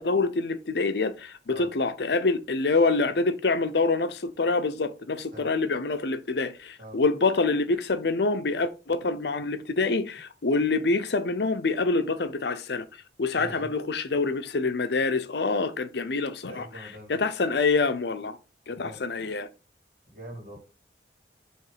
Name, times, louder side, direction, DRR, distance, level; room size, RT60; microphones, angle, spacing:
voice 1, 0.0-12.9 13.2-16.6 17.1-18.4 18.7-19.5, left 3 dB, 65° left, 0.6 m, -26 dB
voice 2, 13.3-13.7 16.4-17.2 18.7-19.0 20.1-20.6, right 1 dB, 45° right, 2.5 m, -43 dB
7.5 x 3.2 x 4.9 m
head